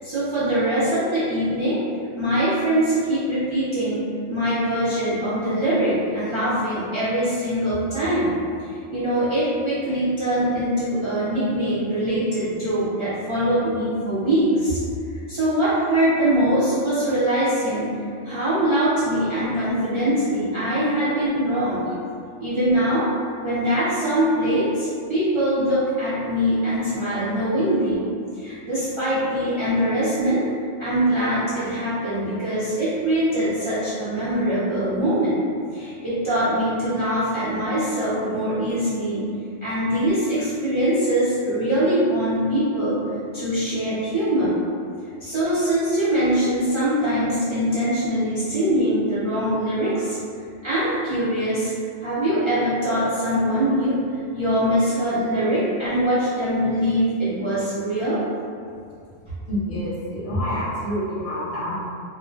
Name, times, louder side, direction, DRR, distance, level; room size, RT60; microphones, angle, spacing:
voice 1, 0.0-1.8 2.1-8.4 8.7-14.8 15.1-17.9 18.2-21.9 22.4-23.1 23.4-28.1 28.4-30.4 30.8-35.4 35.7-39.3 39.6-43.0 43.3-44.6 45.2-50.2 50.6-51.7 52.0-54.0 54.3-58.2, right 1 dB, 50° right, -12 dB, 0.3 m, -22 dB
voice 2, 59.5-61.7, equal, 35° left, -8 dB, 0.6 m, -27 dB
2.5 x 2.1 x 2.4 m, 2.3 s
omnidirectional pair, 1.3 m